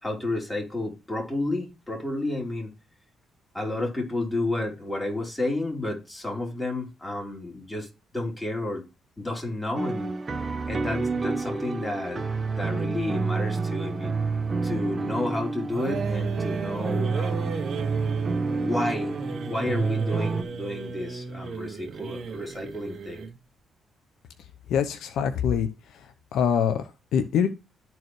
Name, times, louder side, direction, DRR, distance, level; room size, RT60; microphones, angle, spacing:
voice 1, 0.0-2.7 3.5-7.9 8.1-8.8 9.2-10.1 10.7-14.1 14.6-17.6 18.6-19.2 19.5-23.2, left 2 dB, 15° left, 3.5 m, -31 dB
sound 1, 9.8-20.4, right 4 dB, 30° right, 1.1 m, -29 dB
sound 2, 15.7-23.4, right 6 dB, 60° right, 1.8 m, -36 dB
voice 2, 24.7-25.7 26.3-27.5, left 8 dB, 80° left, 0.7 m, -24 dB
12.0 x 4.6 x 3.1 m
cardioid pair, 90°, 0 cm